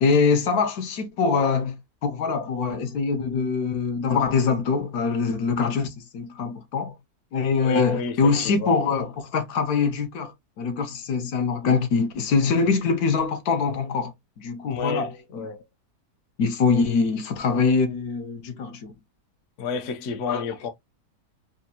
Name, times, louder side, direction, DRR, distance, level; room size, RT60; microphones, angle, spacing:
voice 1, 0.0-6.9 7.3-15.4 16.4-18.9 20.2-20.4, left 5 dB, 75° left, 1.3 m, -24 dB
voice 2, 7.6-8.7 14.7-15.6 19.6-20.7, left 4 dB, 60° left, 0.9 m, -31 dB
4.3 x 2.6 x 2.8 m
omnidirectional pair, 1.6 m